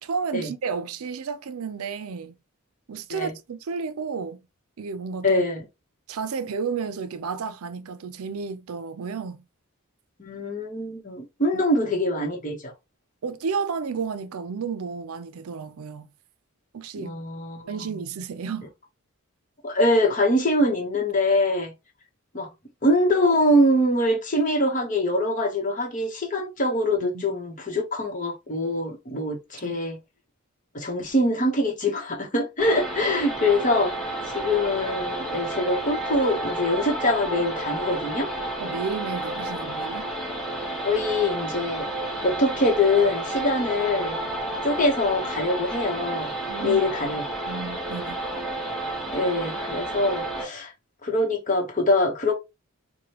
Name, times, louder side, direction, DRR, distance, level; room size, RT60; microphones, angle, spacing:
voice 1, 0.0-2.4 2.9-4.4 4.8-5.4 6.1-9.4 13.2-16.1 16.7-17.1 17.7-18.7 27.0-27.2 29.6-29.8 38.6-40.1 46.5-46.8 47.5-48.2, right 5 dB, 75° right, 0.5 m, -32 dB
voice 2, 5.2-5.6 10.2-12.7 17.0-17.8 19.6-21.7 22.3-22.5 22.8-30.0 30.7-38.3 40.8-41.9 42.2-44.2 44.6-46.3 46.6-47.2 49.1-50.7 51.0-52.3, left 1 dB, 35° left, 1.0 m, -24 dB
sound 1, 32.6-50.5, right 1 dB, ahead, 0.9 m, -31 dB
4.8 x 2.2 x 2.8 m
head